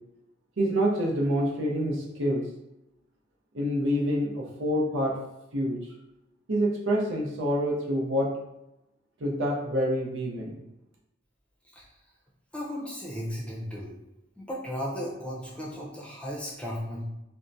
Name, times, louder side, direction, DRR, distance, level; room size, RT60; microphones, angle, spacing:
voice 1, 0.6-2.4 3.5-5.2 5.5-5.8 6.5-8.3 9.2-10.6, equal, 85° right, -1 dB, 0.7 m, -27 dB
voice 2, 12.5-13.9 14.4-17.0, equal, 5° left, -4 dB, 0.6 m, -35 dB
4.3 x 2.2 x 2.6 m, 0.92 s
head